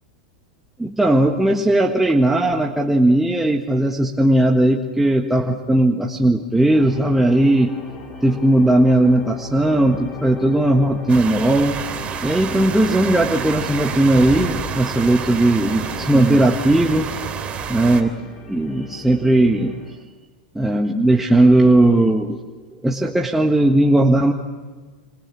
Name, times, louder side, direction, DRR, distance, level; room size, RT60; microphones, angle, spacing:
voice 1, 0.8-7.7 8.2-11.8 12.2-17.1 17.7-18.1 18.5-19.8 20.5-22.4 22.8-24.3, right 1 dB, 5° right, 2 dB, 1.6 m, -17 dB
sound 1, 6.7-20.0, left 3 dB, 40° left, 4.9 m, -38 dB
sound 2, 11.1-18.0, right 7 dB, 25° right, 3.2 m, -29 dB
26.5 x 26.5 x 7.4 m, 1.4 s
hypercardioid pair, 105°, 4 cm